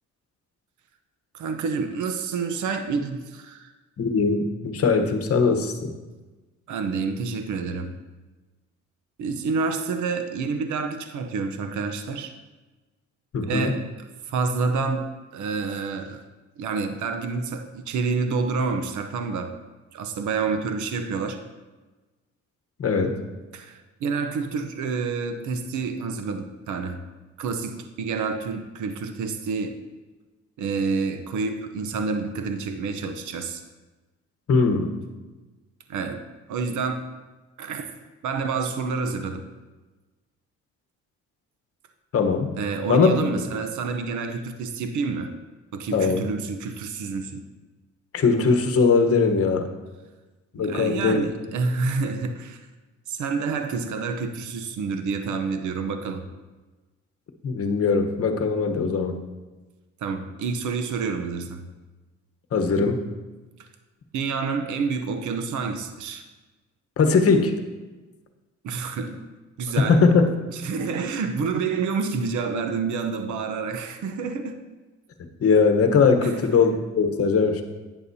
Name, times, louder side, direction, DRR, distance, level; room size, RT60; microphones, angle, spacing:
voice 1, 1.3-3.7 6.7-8.0 9.2-12.3 13.4-13.8 14.3-15.1 15.3-16.2 16.6-19.5 19.9-21.4 23.5-27.0 27.4-29.8 30.6-33.6 35.9-36.2 36.5-37.0 37.6-39.4 42.5-45.3 45.7-47.4 50.5-52.6 53.1-56.3 60.0-61.7 64.1-66.2 68.6-69.3 69.6-70.0 70.5-74.6 76.2-76.4, right 4 dB, 75° right, 6 dB, 0.9 m, -28 dB
voice 2, 4.0-5.9 13.3-13.7 22.8-23.2 34.5-34.9 42.1-42.5 42.9-43.2 45.9-46.3 48.1-49.7 50.5-51.3 57.4-59.2 62.5-63.0 67.0-67.6 69.9-70.3 75.4-77.6, left 4 dB, 50° left, 5 dB, 1.1 m, -20 dB
11.0 x 9.1 x 2.8 m, 1.2 s
cardioid pair, 90°, 30 cm